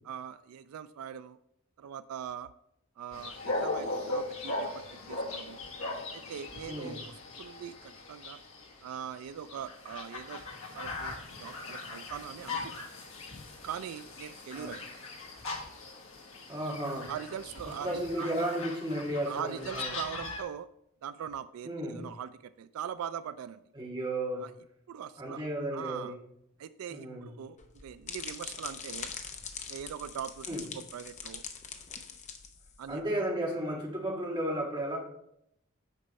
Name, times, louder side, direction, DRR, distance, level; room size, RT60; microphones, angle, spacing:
voice 1, 0.0-1.4 1.8-2.5 3.0-5.6 6.1-8.4 8.8-10.4 10.7-12.9 13.6-14.9 17.1-18.3 19.3-20.7 21.0-23.6 24.4-24.5 24.9-25.4 25.7-26.2 26.6-29.1 29.7-30.4 30.7-31.4 32.8-33.0, right 8 dB, 90° right, 14 dB, 0.3 m, -41 dB
sound 1, 3.1-20.4, left 2 dB, 70° left, 1.5 m, -39 dB
voice 2, 6.6-7.0 14.5-14.7 16.5-17.1 17.6-19.9 21.6-22.1 23.7-24.5 25.2-26.2 26.9-27.4 30.5-30.6 32.9-35.0, right 1 dB, 20° right, -2 dB, 1.7 m, -34 dB
sound 2, 27.6-33.0, left 6 dB, 35° left, 0.7 m, -43 dB
8.2 x 5.5 x 4.1 m, 0.77 s
head